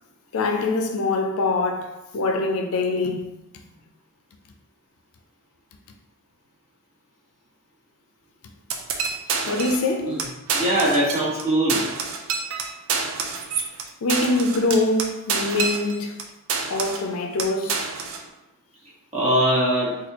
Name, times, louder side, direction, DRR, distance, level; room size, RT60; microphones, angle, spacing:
voice 1, 0.3-3.3 9.5-10.2 14.0-16.2 16.7-17.8, left 2 dB, 70° left, 0.4 m, -24 dB
sound 1, 8.7-9.9 10.2-10.3 10.5-11.4 11.7-16.2 16.5-17.1 17.4-18.2, right 5 dB, 65° right, 0.4 m, -27 dB
voice 2, 10.5-11.8 19.1-20.0, right 1 dB, 30° right, 1.1 m, -21 dB
4.1 x 2.4 x 2.9 m
head